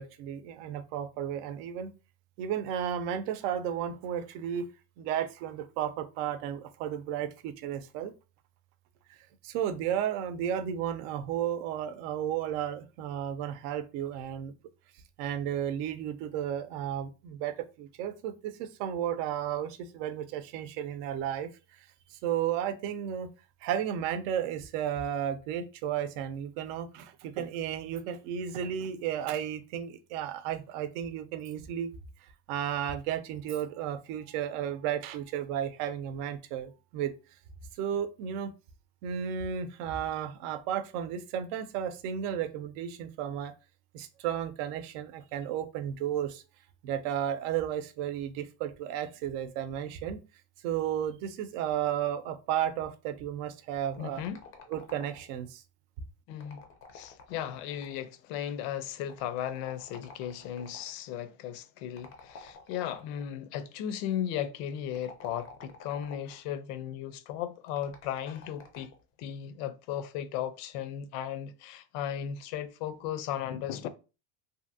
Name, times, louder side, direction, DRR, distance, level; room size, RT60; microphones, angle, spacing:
voice 1, 0.0-1.9 2.4-4.7 5.0-8.1 9.1-9.2 9.4-14.5 15.2-21.5 21.8-23.3 23.6-31.9 32.2-37.1 37.8-38.5 39.0-43.5 43.9-46.4 46.8-50.2 50.6-54.2 54.7-55.6, right 9 dB, 75° right, 0.6 m, -33 dB
sound 1, 53.8-55.5 56.3-58.1 59.1-60.9 62.0-63.3 64.8-66.4 67.7-69.0, left 5 dB, 30° left, 0.4 m, -50 dB
voice 2, 54.0-54.4 56.3-56.6 56.9-68.9 69.2-73.9, left 10 dB, 80° left, 0.6 m, -36 dB
2.8 x 2.6 x 2.5 m
cardioid pair, 155°, 46 cm